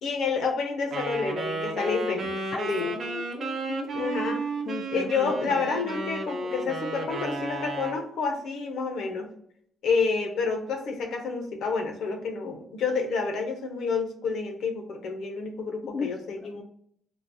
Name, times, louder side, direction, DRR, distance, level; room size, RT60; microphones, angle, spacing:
voice 1, 0.0-2.3 2.7-2.9 3.9-4.4 4.9-9.3 9.8-16.6, left 4 dB, 75° left, 3 dB, 0.8 m, -29 dB
Wind instrument woodwind instrument, 0.9-8.0, right 2 dB, 55° right, 0.7 m, -33 dB
voice 2, 2.5-4.4 4.7-5.7 15.9-16.1 16.4-16.6, left 5 dB, 50° left, 3 dB, 0.4 m, -35 dB
3.8 x 2.4 x 2.7 m, 0.68 s
cardioid pair, 90°, 0 cm